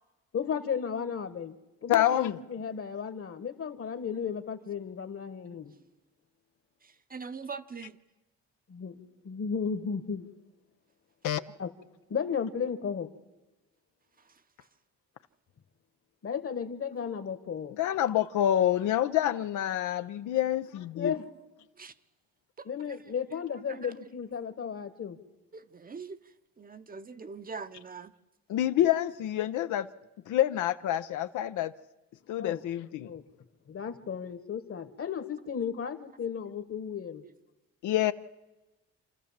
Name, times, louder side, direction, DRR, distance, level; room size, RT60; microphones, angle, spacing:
voice 1, 0.3-1.6 1.8-5.7 8.7-10.3 11.6-11.7 12.1-13.1 16.2-17.8 20.9-21.2 22.6-25.2 32.4-32.6 33.1-33.4 33.7-37.2, left 7 dB, 50° left, 1.5 m, -34 dB
voice 2, 1.9-2.4 11.2-11.4 17.8-21.1 28.5-29.9 30.3-31.7 32.3-33.1 37.8-38.1, left 12 dB, 80° left, 0.7 m, -27 dB
voice 3, 6.8-8.0 21.8-21.9 22.6-23.0 23.7-23.9 25.5-26.2 26.6-28.1, right 5 dB, 30° right, 0.8 m, -42 dB
27.5 x 13.5 x 7.4 m
cardioid pair, 90°, 30 cm